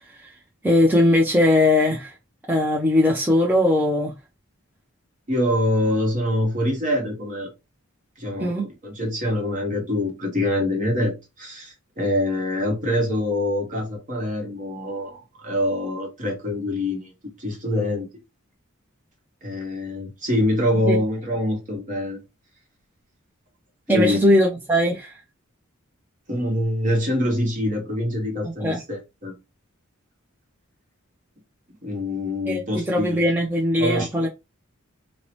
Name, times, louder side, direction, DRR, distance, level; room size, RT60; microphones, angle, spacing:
voice 1, 0.6-2.1 2.5-4.1 8.4-8.7 20.9-21.0 23.9-25.1 28.6-28.8 32.5-34.3, left 1 dB, 10° right, 0.4 m, -20 dB
voice 2, 5.3-7.5 8.2-17.1 17.4-18.1 19.4-22.2 23.9-24.2 26.3-29.3 31.8-33.3 33.8-34.3, left 1 dB, 40° right, 1.0 m, -25 dB
2.7 x 2.0 x 2.9 m
head